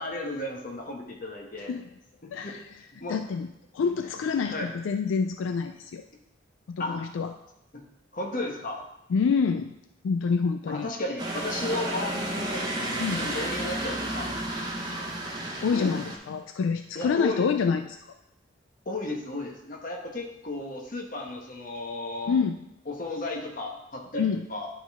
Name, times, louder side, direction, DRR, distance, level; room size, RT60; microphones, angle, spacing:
voice 1, 0.0-1.7 2.2-2.5 3.0-3.2 4.5-4.7 6.8-7.0 7.7-7.8 8.1-8.8 10.7-12.6 13.2-14.3 15.7-16.0 16.9-17.5 18.8-22.3 22.9-24.7, left 2 dB, 45° left, 1 dB, 1.1 m, -34 dB
voice 2, 1.6-1.9 2.3-2.6 3.1-3.5 3.7-6.0 6.7-7.3 9.1-9.7 10.0-10.9 13.0-13.3 15.1-15.2 15.6-17.8 22.3-22.6 24.2-24.5, left 5 dB, 80° left, 7 dB, 0.3 m, -27 dB
sound 1, 11.2-16.2, right 1 dB, 20° right, 1.0 m, -32 dB
11.0 x 3.9 x 3.5 m, 0.86 s
head